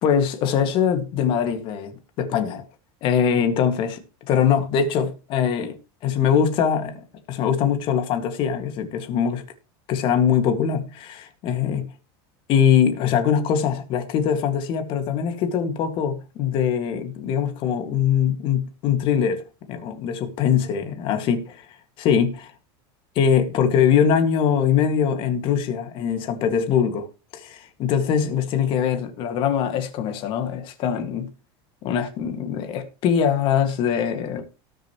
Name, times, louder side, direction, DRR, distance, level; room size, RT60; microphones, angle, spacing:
voice 1, 0.0-2.6 3.0-5.8 6.0-9.4 9.9-11.9 12.5-21.4 22.0-22.3 23.2-27.1 27.3-31.3 31.8-34.4, left 8 dB, 40° left, 2.0 m, -22 dB
18.0 x 6.8 x 3.1 m
supercardioid pair, 160°, 13 cm